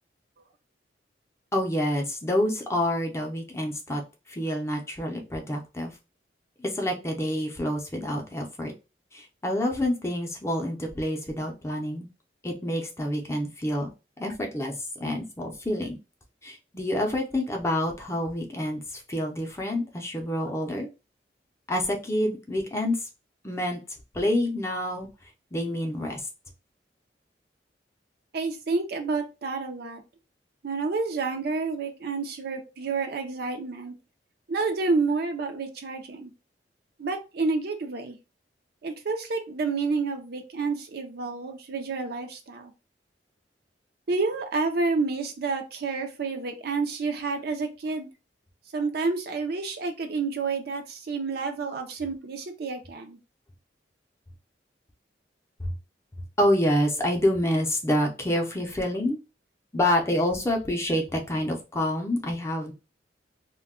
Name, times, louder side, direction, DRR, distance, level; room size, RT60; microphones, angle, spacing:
voice 1, 1.5-4.0 4.3-5.9 6.6-8.7 9.1-12.1 12.4-13.9 14.2-16.0 16.4-20.9 21.7-23.1 23.4-23.8 24.1-25.1 25.5-26.2 55.6-55.7 56.4-59.2 59.7-62.7, left 1 dB, 15° left, 1 dB, 0.5 m, -27 dB
voice 2, 28.3-30.0 30.6-33.9 34.5-36.3 37.0-38.2 38.8-42.7 44.1-48.1 48.7-53.2, right 4 dB, 60° right, 6 dB, 0.5 m, -29 dB
2.2 x 2.2 x 3.5 m, 0.28 s
head